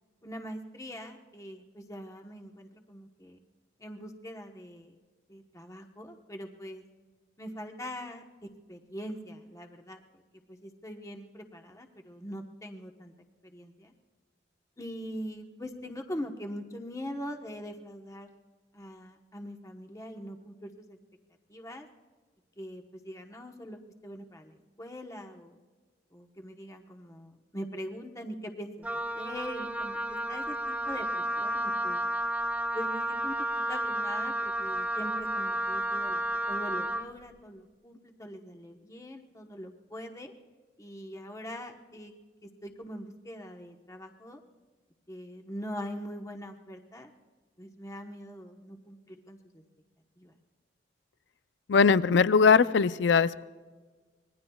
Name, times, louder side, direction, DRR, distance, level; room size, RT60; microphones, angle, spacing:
voice 1, 0.2-3.4 3.8-4.9 5.3-6.9 7.4-10.0 10.5-13.1 13.4-13.9 14.8-18.3 18.7-21.0 21.5-21.9 22.6-25.6 26.1-32.0 32.7-40.3 40.8-42.1 42.4-44.4 45.1-47.1 47.6-49.6 50.2-50.3, equal, 20° left, 3 dB, 1.1 m, -42 dB
Wind instrument woodwind instrument, 28.8-37.1, right 1 dB, 10° right, 0.5 m, -32 dB
voice 2, 51.7-53.4, left 5 dB, 85° left, 15 dB, 0.5 m, -21 dB
25.5 x 20.5 x 2.3 m, 1.4 s
head